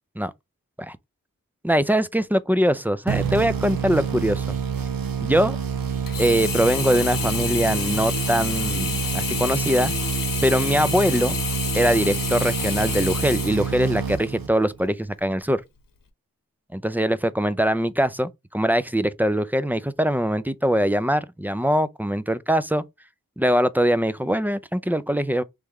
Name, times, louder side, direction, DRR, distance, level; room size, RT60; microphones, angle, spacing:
voice 1, 1.6-4.6 5.2-5.6 6.2-9.9 10.4-11.4 11.7-15.6 16.7-22.8 23.4-25.4, equal, 5° right, 0.3 m, -22 dB
sound 1, 3.1-14.8, right 6 dB, 85° right, 0.7 m, -28 dB
Sink (filling or washing), 6.1-14.3 14.8-14.9, left 6 dB, 75° left, 0.9 m, -29 dB
3.4 x 3.2 x 3.5 m
wide cardioid pair, 60°, 34 cm